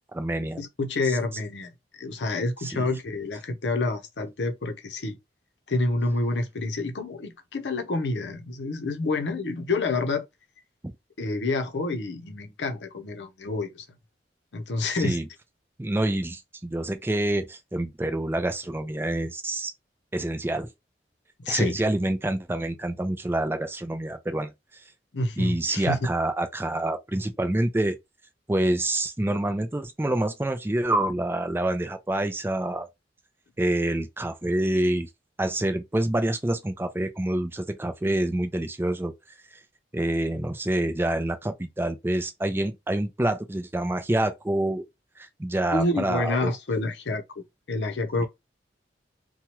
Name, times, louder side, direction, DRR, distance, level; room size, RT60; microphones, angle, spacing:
voice 1, 0.0-0.6 1.1-1.2 2.6-2.9 15.0-15.2 15.8-19.7 20.1-20.7 21.5-24.5 25.4-28.0 28.5-32.9 33.6-35.1 35.4-39.6 39.9-44.8 45.2-46.5 48.2-48.3, right 1 dB, 10° right, 0.4 m, -27 dB
voice 2, 0.6-1.7 2.0-5.2 5.7-10.2 11.2-13.9 14.5-15.2 21.4-21.8 25.1-26.0 45.7-47.2 47.7-48.3, left 2 dB, 75° left, 0.7 m, -28 dB
2.9 x 2.2 x 2.9 m
head